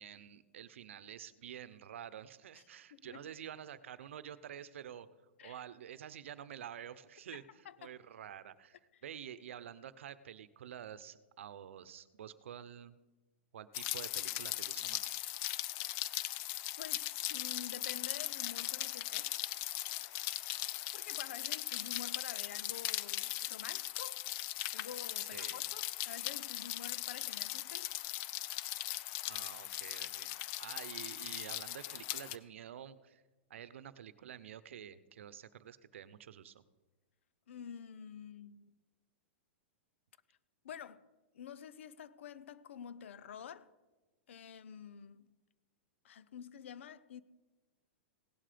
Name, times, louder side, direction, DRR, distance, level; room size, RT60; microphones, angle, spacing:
voice 1, 0.0-5.1 5.4-7.4 7.8-12.9 13.5-15.2 25.3-25.6 29.3-33.2 33.5-36.6, right 9 dB, 80° right, 0.8 m, -49 dB
voice 2, 2.9-3.3 5.4-5.6 7.3-7.4 7.6-8.0 16.8-19.3 20.9-24.2 24.7-27.9 37.5-38.8 40.6-41.0 41.3-43.7 44.3-45.3 46.0-47.2, left 8 dB, 80° left, 0.8 m, -49 dB
Rain, 13.7-32.4, left 16 dB, 35° left, 0.5 m, -39 dB
17.0 x 11.5 x 5.2 m
supercardioid pair, 165°, 7 cm